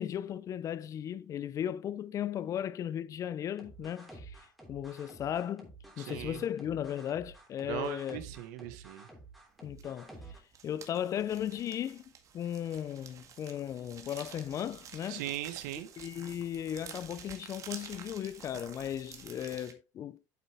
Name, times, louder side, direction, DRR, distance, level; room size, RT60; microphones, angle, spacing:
voice 1, 0.0-4.4 4.7-8.2 9.6-10.1 10.6-12.0 12.3-15.2 16.0-20.2, left 10 dB, 35° left, 0.6 m, -36 dB
sound 1, 3.6-10.4, right 2 dB, ahead, 3.2 m, -51 dB
voice 2, 6.0-6.4 7.6-9.0 15.1-15.9, right 13 dB, 85° right, 1.6 m, -39 dB
sound 2, 9.8-10.1 10.3-19.7, right 7 dB, 35° right, 1.9 m, -50 dB
9.3 x 7.8 x 3.5 m
cardioid pair, 135°, 9 cm